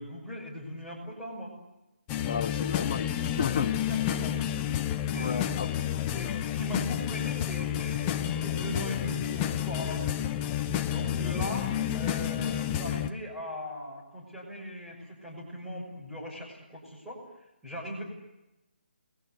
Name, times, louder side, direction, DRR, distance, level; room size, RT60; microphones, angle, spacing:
voice 1, 0.0-1.5 3.7-4.4 5.1-5.3 6.2-10.2 10.9-17.2 17.6-18.0, equal, 5° right, -5 dB, 6.2 m, -39 dB
sound 1, 2.1-13.1, left 10 dB, 15° left, 0.9 m, -30 dB
voice 2, 2.2-3.7 5.1-5.7, left 7 dB, 35° left, 2 dB, 1.2 m, -32 dB
29.0 x 22.0 x 8.2 m, 0.97 s
figure-of-eight pair, 160°, 6 cm